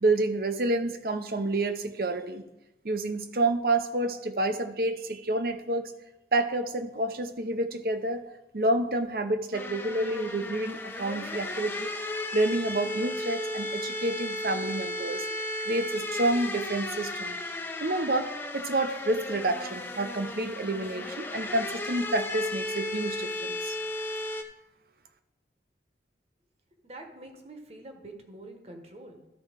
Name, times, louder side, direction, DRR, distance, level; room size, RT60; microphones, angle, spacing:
voice 1, 0.0-2.4 2.8-5.9 6.3-8.2 8.5-11.9 12.3-15.3 15.6-17.4 17.8-23.8, right 2 dB, 55° right, 8 dB, 0.7 m, -29 dB
sound 1, 9.5-24.4, left 1 dB, 10° left, 0.5 m, -34 dB
voice 2, 26.8-29.3, right 2 dB, 35° right, 4 dB, 1.1 m, -46 dB
12.5 x 4.3 x 5.0 m, 0.92 s
head